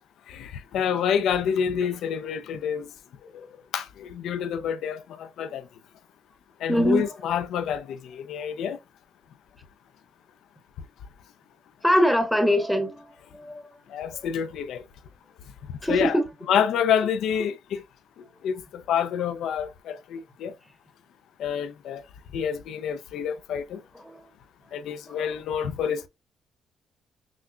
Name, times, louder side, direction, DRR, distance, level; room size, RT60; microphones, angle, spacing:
voice 1, 0.3-2.9 3.7-5.6 6.6-8.8 13.9-14.8 15.9-16.2 16.5-17.8 18.4-20.5 21.4-22.0 22.3-23.8 24.7-26.1, left 8 dB, 80° left, 0.5 m, -27 dB
voice 2, 6.7-7.1 11.8-13.7 14.1-14.3 15.8-16.3 24.0-24.2 25.1-25.3, equal, ahead, 0.9 m, -23 dB
5.9 x 2.2 x 2.3 m
cardioid pair, 90°, 0 cm